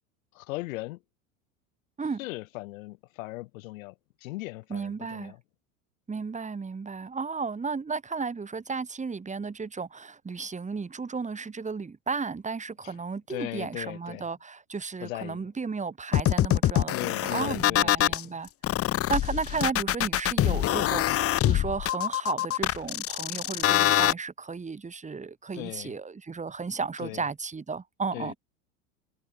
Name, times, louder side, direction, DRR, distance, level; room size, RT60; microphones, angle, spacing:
voice 1, 0.3-1.0 2.2-3.9 4.2-5.4 12.8-12.9 13.3-14.2 15.0-15.4 16.9-18.2 20.5-21.0 25.5-25.9 27.0-27.2 28.1-28.3, left 20 dB, 75° left, 1.2 m, -38 dB
voice 2, 4.7-5.3 6.1-18.5 19.1-28.4, right 4 dB, 15° right, 4.1 m, -34 dB
sound 1, 16.1-18.2 18.6-24.1, left 13 dB, 35° left, 0.9 m, -24 dB
hypercardioid pair, 105°, 41 cm